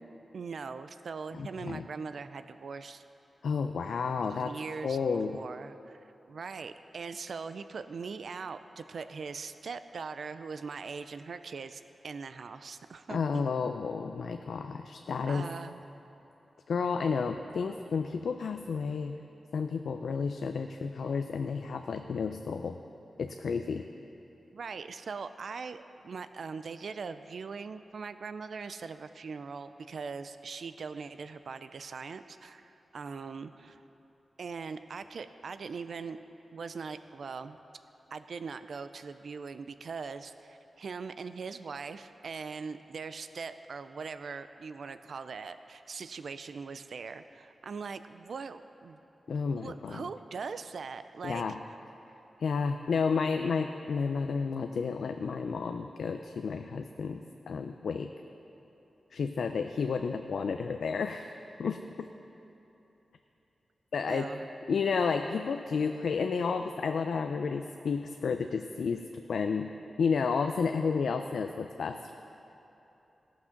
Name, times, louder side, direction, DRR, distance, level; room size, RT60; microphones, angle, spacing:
voice 1, 0.3-3.0 4.2-5.0 5.3-13.5 15.3-15.8 24.5-33.8 34.4-36.2 36.5-37.6 38.1-49.0 49.5-51.6 64.1-64.5, right 5 dB, 60° right, 11 dB, 0.3 m, -41 dB
voice 2, 1.3-1.8 3.4-4.5 4.8-5.4 13.1-15.5 16.7-19.1 19.5-22.8 23.2-23.9 49.3-50.1 51.2-51.6 52.4-58.1 59.1-61.8 63.9-64.3 64.7-69.0 69.3-69.7 70.0-72.1, left 5 dB, 75° left, 6 dB, 0.4 m, -31 dB
17.0 x 6.1 x 5.8 m, 3.0 s
wide cardioid pair, 165°, 0 cm